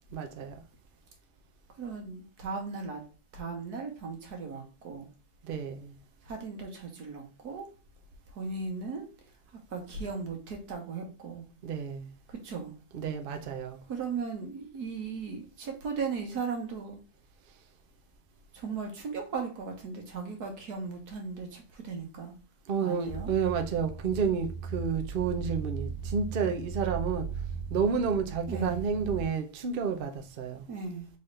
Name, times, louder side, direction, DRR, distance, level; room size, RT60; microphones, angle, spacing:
voice 1, 0.1-0.5 5.4-6.0 11.6-12.1 12.9-13.8 22.7-27.3 27.7-30.7, right 6 dB, 55° right, 0.6 m, -30 dB
voice 2, 1.8-3.0 3.3-5.1 6.2-7.7 8.4-9.1 9.7-11.5 12.3-12.7 13.9-17.0 18.5-22.3 22.8-23.3 28.5-28.8 30.7-31.1, right 5 dB, 75° right, 1.7 m, -37 dB
sound 1, 23.0-29.2, right 6 dB, 30° left, 1.7 m, -37 dB
4.1 x 3.5 x 3.2 m
omnidirectional pair, 1.7 m